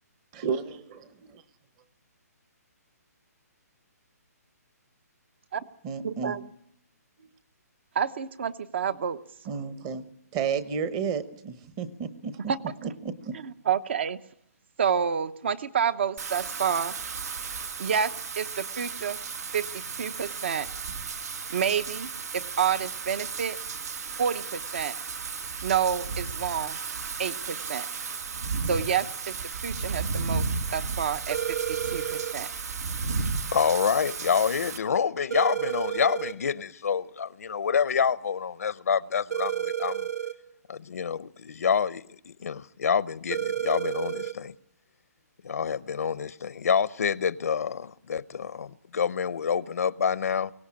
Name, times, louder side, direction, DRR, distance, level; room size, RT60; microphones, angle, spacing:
voice 1, 0.4-1.1 5.8-6.3 7.2-7.3 9.5-10.0 10.3-12.5 12.8-13.4, right 6 dB, 20° right, 1.0 m, -32 dB
voice 2, 6.0-6.5 7.9-9.2 12.5-12.6 13.3-14.2 14.8-16.9 17.8-19.2 19.5-20.7 21.5-23.6 24.2-24.9 25.6-26.8 27.2-27.9 28.7-29.3 29.6-32.5, right 7 dB, 40° right, 0.9 m, -29 dB
Wind / Rain, 16.2-34.8, right 4 dB, 70° right, 2.1 m, -34 dB
sound 1, 31.3-32.3 35.3-36.3 39.3-40.3 43.3-44.3, right 10 dB, 85° right, 2.5 m, -30 dB
voice 3, 33.5-40.1 40.7-44.5 45.4-50.5, left 7 dB, 65° left, 0.8 m, -27 dB
23.5 x 17.5 x 8.6 m
hypercardioid pair, 170°, 9 cm